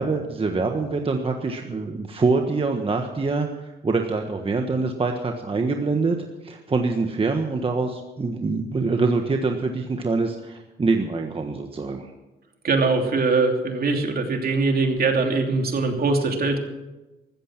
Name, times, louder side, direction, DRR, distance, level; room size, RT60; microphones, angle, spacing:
voice 1, 0.0-3.5 3.8-6.2 6.4-12.1, right 3 dB, 30° right, 3 dB, 1.4 m, -24 dB
voice 2, 12.6-16.6, right 3 dB, 50° right, 3 dB, 2.9 m, -22 dB
15.0 x 14.0 x 6.1 m, 1.1 s
cardioid pair, 90°, 20 cm